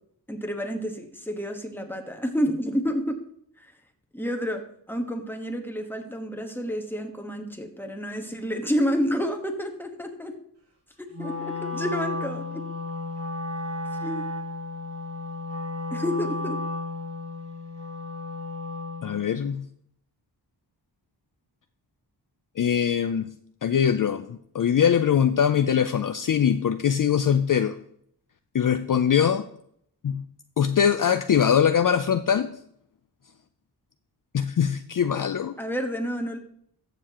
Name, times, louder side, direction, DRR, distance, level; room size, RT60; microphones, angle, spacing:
voice 1, 0.3-3.2 4.1-4.6 4.9-10.4 11.0-12.6 14.0-14.2 15.9-16.6 35.6-36.4, equal, 5° left, 4 dB, 1.3 m, -29 dB
Wind instrument woodwind instrument, 11.1-19.2, left 2 dB, 80° right, 2.2 m, -33 dB
voice 2, 19.0-19.6 22.6-23.3 23.6-27.8 28.5-29.4 30.0-30.2 30.6-32.5 34.3-35.5, left 8 dB, 50° left, 10 dB, 0.5 m, -22 dB
14.0 x 6.9 x 2.9 m, 0.68 s
wide cardioid pair, 80°, 41 cm